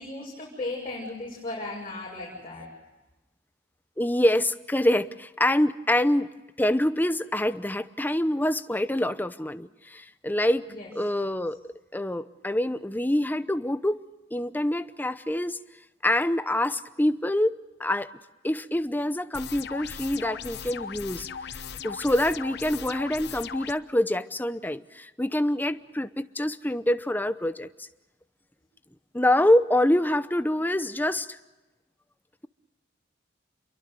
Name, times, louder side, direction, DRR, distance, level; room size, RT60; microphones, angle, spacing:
voice 1, 0.0-2.7 10.7-10.9, left 2 dB, 30° left, -5 dB, 7.0 m, -36 dB
voice 2, 4.0-6.3 6.6-10.7 11.0-11.6 11.9-14.0 14.3-15.6 16.0-17.5 17.8-18.1 18.4-27.7 29.1-31.4, left 1 dB, 10° left, 12 dB, 0.8 m, -25 dB
sound 1, 19.3-23.7, left 7 dB, 65° left, 1.0 m, -38 dB
28.5 x 23.0 x 6.8 m, 1.1 s
head